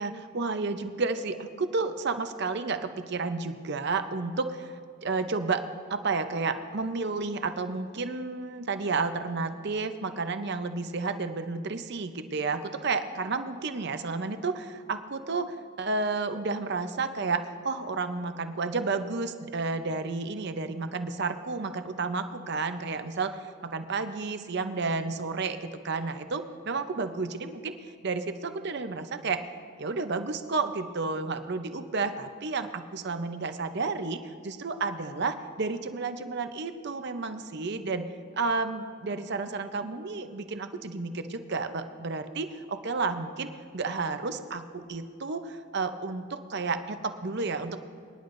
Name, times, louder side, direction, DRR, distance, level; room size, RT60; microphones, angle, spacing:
voice 1, 0.0-4.7 5.0-5.6 5.9-29.4 29.8-38.0 38.3-43.5 43.7-47.8, right 4 dB, 55° right, 9 dB, 0.7 m, -31 dB
24.0 x 10.5 x 2.6 m, 2.1 s
head